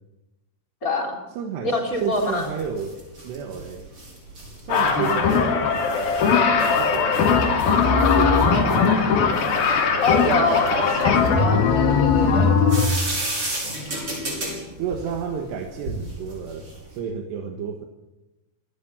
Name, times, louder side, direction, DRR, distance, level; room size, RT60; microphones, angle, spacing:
voice 1, 0.8-1.1 1.6-2.5 4.7-5.1 10.0-12.6, left 3 dB, 20° left, 2 dB, 3.4 m, -25 dB
voice 2, 1.4-3.0 3.2-3.9 4.6-5.8 6.8-9.3 10.2-11.4 14.8-17.9, right 7 dB, 90° right, 4 dB, 3.7 m, -32 dB
sound 1, 1.9-16.9, right 1 dB, 30° right, 6.8 m, -35 dB
sound 2, 4.7-11.3, left 5 dB, 85° left, 5.1 m, -22 dB
sound 3, 5.2-5.8 6.2-6.7 7.2-9.7 10.1-10.6 11.0-13.0, left 5 dB, 65° left, 4.0 m, -20 dB
26.5 x 13.5 x 8.9 m, 1.0 s
omnidirectional pair, 4.7 m